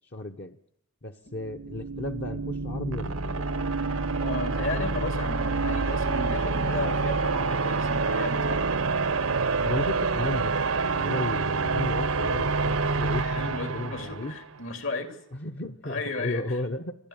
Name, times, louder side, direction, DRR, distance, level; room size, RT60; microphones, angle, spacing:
voice 1, 0.1-0.5 1.0-3.4 9.6-10.5 10.9-14.3 15.3-16.9, left 2 dB, 50° left, 4 dB, 0.9 m, -34 dB
sound 1, 1.3-14.5, right 4 dB, 85° right, 1.0 m, -27 dB
voice 2, 4.2-8.6 13.1-15.2 15.8-16.6 17.0-17.1, left 3 dB, 70° left, 8 dB, 2.9 m, -35 dB
29.0 x 12.0 x 8.8 m, 0.68 s
head